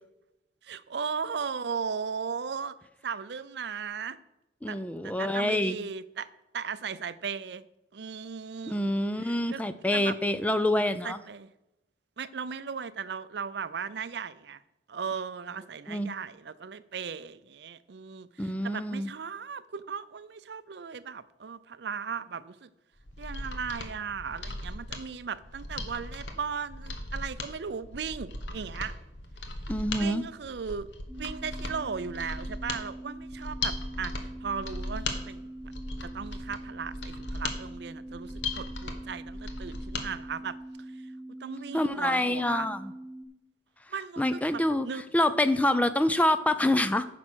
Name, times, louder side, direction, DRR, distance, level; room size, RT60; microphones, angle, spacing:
voice 1, 0.6-2.7 3.0-4.2 4.7-4.8 5.0-6.3 6.5-7.6 7.9-8.9 9.2-9.6 9.9-10.2 11.0-11.5 12.2-14.6 14.9-22.7 23.2-28.9 30.0-30.9 31.2-35.5 36.0-40.6 41.4-42.7 43.9-45.0, right 6 dB, 65° right, 16 dB, 0.5 m, -37 dB
voice 2, 4.6-5.8 8.7-11.2 15.9-16.1 18.4-19.1 29.7-30.2 41.7-42.9 44.2-44.9 45.1-47.1, left 1 dB, 10° left, 12 dB, 0.4 m, -26 dB
Mechanisms, 23.0-40.1 40.4-40.5, left 2 dB, 75° left, 1.3 m, -38 dB
sound 1, 31.1-43.2, right 1 dB, 25° right, 1.2 m, -43 dB
9.8 x 6.1 x 6.2 m, 0.90 s
head